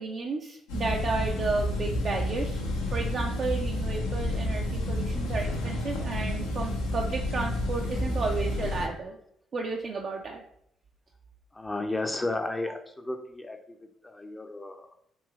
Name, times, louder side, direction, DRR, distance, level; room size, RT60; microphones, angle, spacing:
voice 1, 0.0-2.6 2.9-9.2 9.5-10.4, right 3 dB, 55° right, 1 dB, 0.3 m, -32 dB
sound 1, 0.7-8.9, left 1 dB, 90° left, 0.5 m, -30 dB
voice 2, 11.5-13.6 14.0-14.9, left 2 dB, 20° left, 5 dB, 0.4 m, -33 dB
3.0 x 2.9 x 2.4 m, 0.70 s
hypercardioid pair, 50°, 0 cm